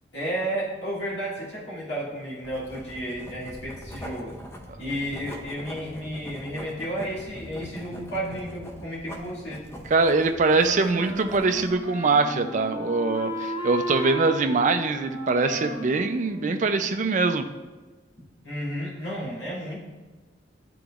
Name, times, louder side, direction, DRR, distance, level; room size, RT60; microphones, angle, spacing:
voice 1, 0.1-4.3 4.8-9.6 18.4-19.8, equal, 70° left, -7 dB, 2.0 m, -32 dB
Writing, 2.4-11.8, equal, 15° left, 0.6 m, -42 dB
voice 2, 9.9-17.4, right 3 dB, 45° right, 8 dB, 0.4 m, -23 dB
Wind instrument woodwind instrument, 10.5-17.1, equal, 15° right, 1.5 m, -35 dB
11.0 x 3.8 x 2.4 m, 1.3 s
head